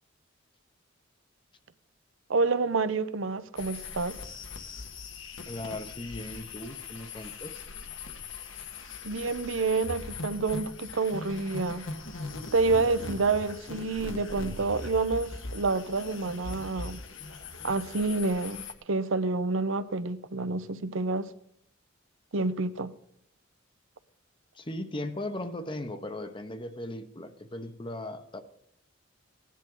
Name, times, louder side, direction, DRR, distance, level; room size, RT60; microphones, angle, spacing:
voice 1, 2.3-4.2 9.0-11.9 12.5-17.0 17.6-21.3 22.3-22.9, right 3 dB, 75° right, 0.8 m, -28 dB
sound 1, 3.6-18.7, left 3 dB, 70° left, 1.5 m, -40 dB
voice 2, 5.5-7.6 24.5-28.4, left 1 dB, 25° left, 0.9 m, -37 dB
17.5 x 10.5 x 3.9 m
head